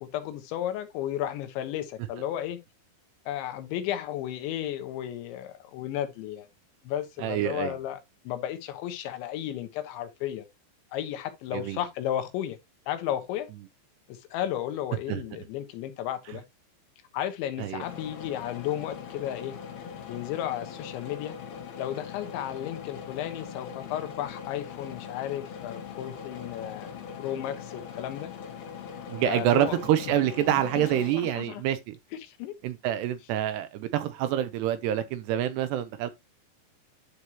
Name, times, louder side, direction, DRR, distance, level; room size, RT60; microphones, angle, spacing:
voice 1, 0.0-2.6 3.3-6.5 6.9-8.0 8.3-10.5 10.9-12.6 12.9-13.5 14.1-16.4 17.1-19.6 20.1-21.4 21.8-26.9 27.2-28.3 29.3-29.8 30.5-30.9 31.1-31.6 32.2-32.6, left 11 dB, 80° left, 3.4 m, -33 dB
voice 2, 7.2-7.8 11.5-11.8 15.1-15.2 17.6-17.8 29.1-31.9 32.6-36.1, right 11 dB, 75° right, 2.7 m, -27 dB
sound 1, 17.8-31.1, left 7 dB, 65° left, 3.5 m, -41 dB
11.5 x 4.9 x 2.9 m
omnidirectional pair, 5.2 m